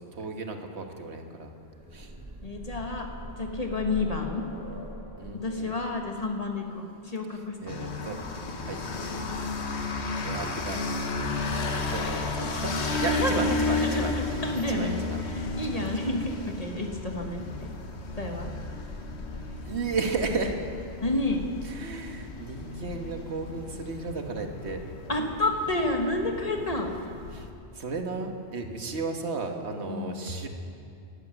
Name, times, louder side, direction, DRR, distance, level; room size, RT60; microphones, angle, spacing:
voice 1, 0.0-1.5 1.9-2.1 5.2-5.7 7.6-8.2 8.6-10.8 11.2-14.4 14.7-15.2 15.7-16.1 19.6-20.6 21.6-24.8 27.3-27.5 27.7-30.5, right 4 dB, 85° right, 4 dB, 1.6 m, -34 dB
sound 1, 1.4-9.2 10.4-10.5 10.9-11.0, equal, 50° right, 5.1 m, -43 dB
voice 2, 2.4-4.4 5.3-7.8 13.1-14.9 15.2-17.4 18.2-18.5 21.0-21.5 25.1-27.0 29.9-30.2, left 2 dB, 35° left, 2 dB, 1.5 m, -30 dB
sound 2, 7.7-27.5, left 3 dB, 90° left, 1.4 m, -33 dB
12.5 x 12.0 x 9.1 m, 2.5 s
omnidirectional pair, 1.1 m